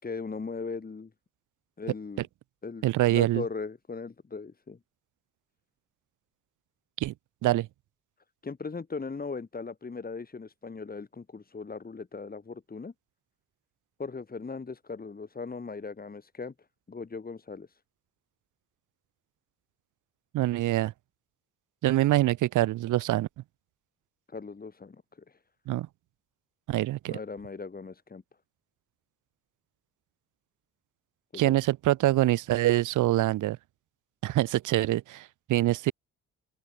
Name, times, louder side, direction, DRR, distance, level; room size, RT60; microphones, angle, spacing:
voice 1, 0.0-1.1 1.8-2.3 2.6-4.8 8.4-12.9 14.0-16.5 16.9-17.8 24.3-25.4 27.1-28.2 31.3-31.5, left 4 dB, 30° left, 6.3 m, -38 dB
voice 2, 2.8-3.4 7.0-7.1 7.4-7.7 20.3-20.9 21.8-23.3 25.7-25.9 26.7-27.2 31.4-33.6 34.2-35.9, right 15 dB, 85° right, 1.6 m, -25 dB
open air
cardioid pair, 90°, 30 cm